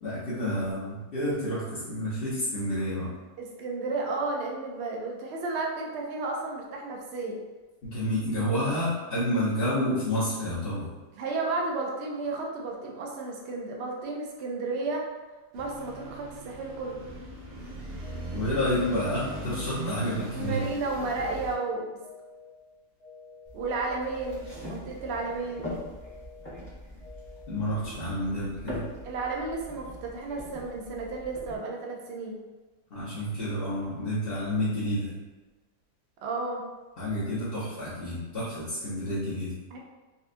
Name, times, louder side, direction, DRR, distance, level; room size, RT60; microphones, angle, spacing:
voice 1, 0.0-3.1 7.8-10.9 18.3-20.6 27.5-28.9 32.9-35.1 37.0-39.5, equal, 45° left, -12 dB, 0.9 m, -29 dB
voice 2, 3.4-7.4 11.1-15.1 15.5-17.0 20.3-22.0 23.5-25.7 29.0-32.4 36.2-36.6 39.7-39.8, right 3 dB, 75° right, 0 dB, 0.6 m, -32 dB
sound 1, 15.5-21.5, right 1 dB, 55° right, 1.1 m, -39 dB
sound 2, 18.0-18.5 19.0-19.5 20.0-20.5 21.0-21.5 22.0-22.5 23.0-23.5 24.0-24.5 25.0-25.5 26.0-26.5 27.0-27.5, left 4 dB, 60° left, 1.8 m, -50 dB
sound 3, 23.4-31.5, left 1 dB, 10° left, 0.8 m, -42 dB
4.2 x 2.3 x 2.5 m, 1.2 s
omnidirectional pair, 1.8 m